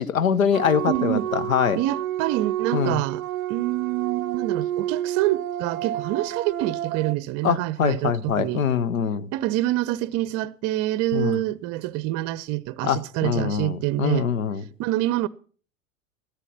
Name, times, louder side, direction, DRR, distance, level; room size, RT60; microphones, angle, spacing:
voice 1, 0.0-1.8 2.7-3.0 7.4-9.3 11.1-11.4 12.8-14.6, left 7 dB, 80° left, 0.9 m, -24 dB
sound 1, 0.5-7.1, right 12 dB, 85° right, 0.5 m, -30 dB
voice 2, 0.9-1.3 1.7-8.6 9.3-14.3 14.8-15.3, right 16 dB, 40° right, 0.6 m, -26 dB
13.5 x 10.0 x 5.8 m
figure-of-eight pair, 85°, 40 cm